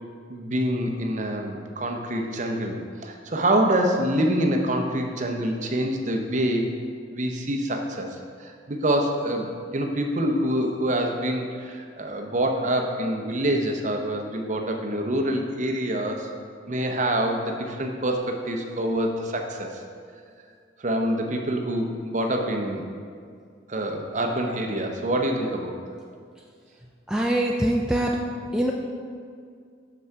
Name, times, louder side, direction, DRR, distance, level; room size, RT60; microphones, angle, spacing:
voice 1, 0.3-6.7 7.1-16.3 16.7-19.8 20.8-22.9 23.7-25.8, right 1 dB, 40° right, 3 dB, 0.7 m, -26 dB
voice 2, 27.1-28.2 28.5-28.7, right 1 dB, 5° right, -1 dB, 0.3 m, -23 dB
6.7 x 6.1 x 4.6 m, 2.2 s
head